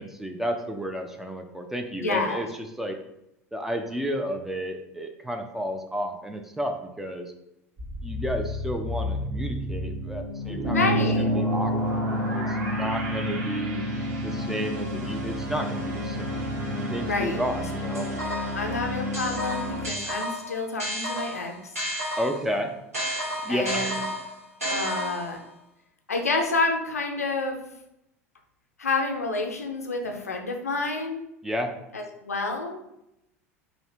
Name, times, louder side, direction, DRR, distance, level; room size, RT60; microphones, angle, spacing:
voice 1, 0.0-2.5 2.8-3.0 3.5-7.3 8.0-10.9 11.2-12.0 12.3-13.8 14.2-16.3 16.9-18.1 22.2-22.7 23.4-23.9 31.4-31.7, equal, 5° right, 4 dB, 0.3 m, -31 dB
voice 2, 2.0-2.4 10.7-11.3 17.0-17.4 17.9-18.1 18.5-21.7 23.5-24.0 24.7-25.4 26.1-27.6 28.8-31.3 31.9-32.8, left 3 dB, 80° left, 3 dB, 0.4 m, -29 dB
sound 1, 7.8-19.9, left 1 dB, 40° right, 1.0 m, -32 dB
Bass guitar, 10.6-16.9, equal, 60° right, 1.4 m, -29 dB
sound 2, 17.9-18.7 19.1-22.5 22.9-25.4, equal, 80° right, 1.1 m, -31 dB
2.7 x 2.5 x 3.1 m, 0.83 s
figure-of-eight pair, 75°, 8 cm